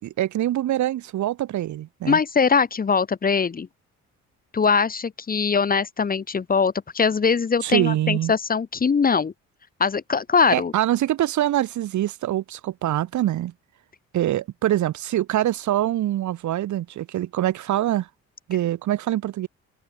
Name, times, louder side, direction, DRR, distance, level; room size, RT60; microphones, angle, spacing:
voice 1, 0.0-2.2 7.6-8.3 10.5-13.5 14.1-18.1 18.5-19.5, right 13 dB, 70° right, 1.4 m, -24 dB
voice 2, 2.0-3.7 4.5-9.3 9.8-10.7, left 5 dB, 30° left, 0.9 m, -21 dB
cardioid pair, 90°, 30 cm